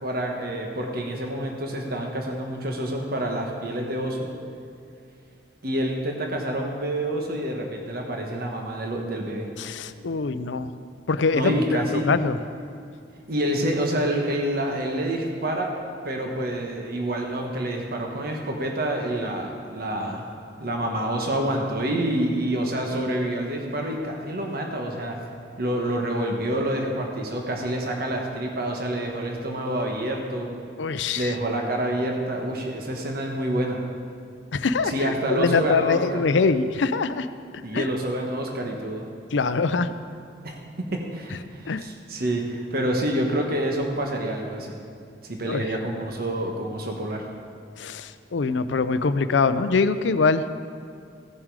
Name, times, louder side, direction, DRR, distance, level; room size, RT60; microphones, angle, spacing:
voice 1, 0.0-4.2 5.6-9.5 11.3-12.1 13.3-15.7 16.0-20.2 20.6-25.2 25.6-30.5 31.1-33.8 34.9-36.2 37.6-39.0 40.4-40.5 40.9-44.8 45.2-47.2, right 1 dB, 55° right, 1 dB, 1.3 m, -27 dB
voice 2, 9.6-10.7 11.1-11.5 12.1-12.4 30.8-31.3 34.5-37.3 37.7-37.9 39.3-39.9 41.3-41.4 41.7-41.8 45.4-45.7 47.8-50.4, left 4 dB, 80° left, 12 dB, 0.5 m, -23 dB
16.0 x 7.5 x 4.8 m, 2.4 s
head